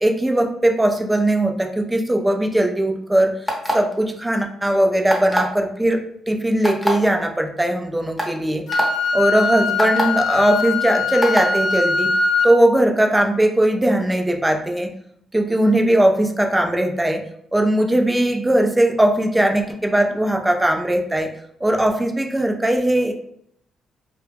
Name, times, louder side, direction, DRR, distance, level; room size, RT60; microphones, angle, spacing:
voice 1, 0.0-3.4 3.7-8.6 9.1-12.1 12.4-14.9 15.3-17.2 17.5-21.3 21.6-23.1, right 1 dB, 10° right, 3 dB, 0.4 m, -19 dB
sound 1, 3.5-3.9 5.1-5.5 6.6-6.9 7.7-7.8 8.2-8.3 8.7-8.9 9.8-10.0 11.2-11.5, equal, 10° left, 0.7 m, -22 dB
Wind instrument woodwind instrument, 8.7-12.5, left 4 dB, 65° left, 0.6 m, -21 dB
2.2 x 2.0 x 3.3 m, 0.69 s
cardioid pair, 90°, 0 cm